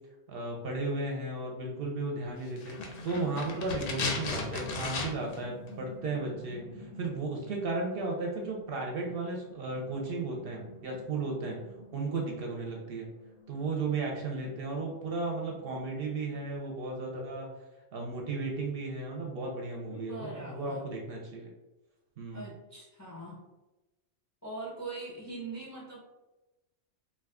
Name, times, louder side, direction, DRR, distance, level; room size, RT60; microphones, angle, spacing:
voice 1, 0.3-2.8 3.0-11.6 11.9-13.1 13.5-17.5 17.9-21.5 22.2-22.5, right 3 dB, 60° right, 0 dB, 0.7 m, -35 dB
sound 1, 2.4-16.6, left 2 dB, 90° left, 1.0 m, -51 dB
sound 2, 2.6-5.4 5.7-5.8, left 3 dB, 60° left, 0.7 m, -35 dB
voice 2, 19.9-20.9 22.3-23.4 24.4-26.0, right 2 dB, 25° left, -4 dB, 0.4 m, -42 dB
2.5 x 2.3 x 3.5 m, 1.1 s
omnidirectional pair, 1.2 m